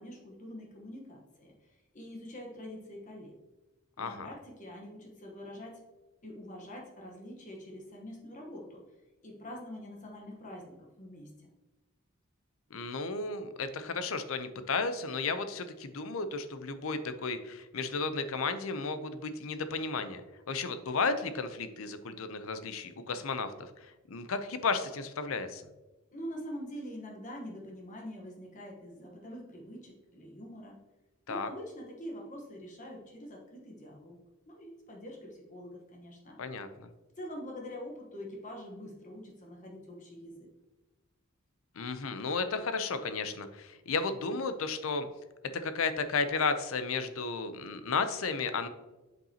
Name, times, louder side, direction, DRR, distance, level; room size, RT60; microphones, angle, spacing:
voice 1, 0.0-3.3 4.0-5.8 6.2-8.8 9.2-11.5 26.1-30.8 31.3-34.2 34.5-36.4 37.2-40.5, equal, 35° left, -1 dB, 1.1 m, -45 dB
voice 2, 12.7-23.5 23.8-25.6 31.3-31.5 36.4-36.9 41.8-45.1 45.6-48.7, left 4 dB, 75° left, 10 dB, 0.6 m, -33 dB
7.8 x 5.2 x 2.8 m, 1.1 s
head